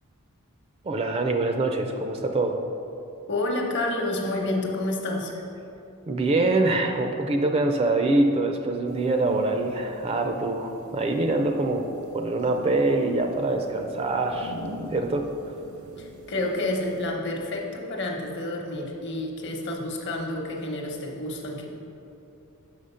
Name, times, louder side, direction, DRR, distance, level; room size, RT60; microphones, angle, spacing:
voice 1, 0.8-2.6 6.1-11.9 12.1-14.5 14.9-15.3, right 2 dB, 25° right, 5 dB, 0.3 m, -24 dB
voice 2, 3.3-5.3 16.0-21.6, left 2 dB, 55° left, 1 dB, 0.9 m, -29 dB
sound 1, 8.9-17.1, equal, 70° right, 0.7 m, -44 dB
6.1 x 5.0 x 5.5 m, 2.9 s
head